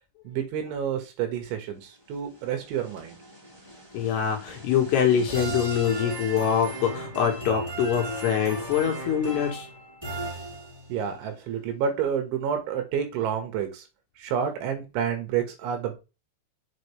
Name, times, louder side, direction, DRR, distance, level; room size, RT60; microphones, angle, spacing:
voice 1, 0.3-3.2 10.9-13.9 14.2-16.0, right 8 dB, 75° right, 3.7 m, -29 dB
sound 1, 2.1-11.0, right 2 dB, 5° right, 3.6 m, -37 dB
voice 2, 3.9-9.7, left 8 dB, 70° left, 2.9 m, -24 dB
7.6 x 5.5 x 3.3 m
omnidirectional pair, 5.8 m